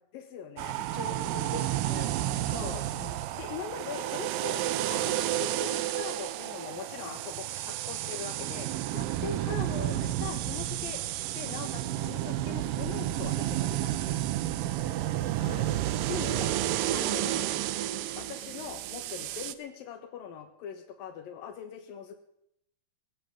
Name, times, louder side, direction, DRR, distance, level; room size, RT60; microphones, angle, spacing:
voice 1, 0.1-0.8 2.5-2.8 3.3-4.6 4.9-11.0 11.4-14.2 16.1-16.5 16.9-17.4 18.1-22.2, left 8 dB, 85° left, 7 dB, 3.0 m, -41 dB
sound 1, 0.6-19.5, right 13 dB, 80° right, 2.4 m, -31 dB
voice 2, 0.9-3.2 9.9-10.1 15.4-15.8, left 2 dB, 35° left, 0 dB, 5.1 m, -42 dB
18.0 x 16.5 x 3.6 m, 0.75 s
omnidirectional pair, 4.0 m